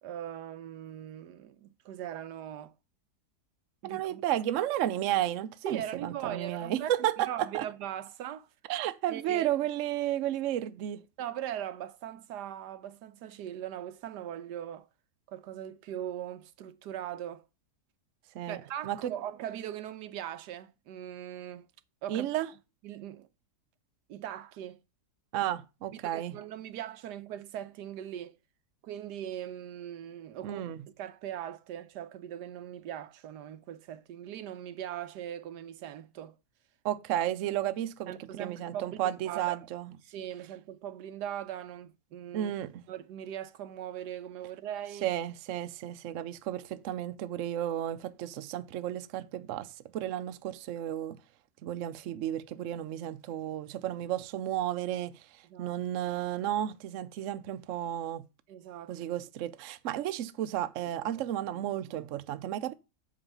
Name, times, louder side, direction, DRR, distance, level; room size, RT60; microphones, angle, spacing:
voice 1, 0.0-2.7 3.8-4.2 5.6-6.9 7.3-8.5 9.1-9.5 11.2-14.9 15.3-17.4 18.5-21.7 22.0-22.3 22.8-23.3 24.1-24.8 25.4-25.5 26.0-28.4 28.8-30.6 31.0-36.4 38.1-39.6 40.0-42.5 42.9-45.1 55.5-55.8 58.5-59.0, right 11 dB, 85° right, 1.3 m, -40 dB
voice 2, 3.8-7.7 8.7-11.0 18.3-19.1 22.1-22.5 25.3-26.4 30.4-30.8 36.8-39.9 42.3-42.8 45.0-51.2 51.6-58.2 58.9-62.7, right 12 dB, 65° right, 0.8 m, -33 dB
7.4 x 5.3 x 5.4 m
omnidirectional pair, 1.8 m